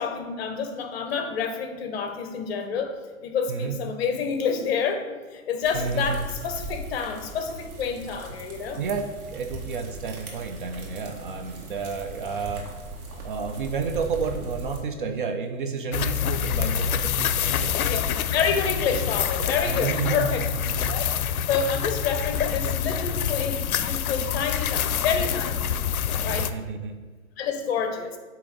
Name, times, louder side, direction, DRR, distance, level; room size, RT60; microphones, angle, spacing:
voice 1, 0.0-8.8 17.8-18.0 18.3-20.4 20.9-21.1 21.5-25.7 26.2-26.5 27.4-28.2, left 6 dB, 45° left, 6 dB, 0.8 m, -28 dB
voice 2, 3.5-3.8 5.7-6.2 8.8-9.0 9.3-12.7 13.2-17.7 19.7-21.0 26.3-27.0, right 5 dB, 40° right, 5 dB, 0.4 m, -31 dB
sound 1, 5.6-14.8, right 2 dB, 85° right, 1.7 m, -39 dB
sound 2, 15.9-26.5, left 8 dB, 85° left, 0.5 m, -26 dB
8.6 x 2.9 x 3.8 m, 1.4 s
hypercardioid pair, 140°, 42 cm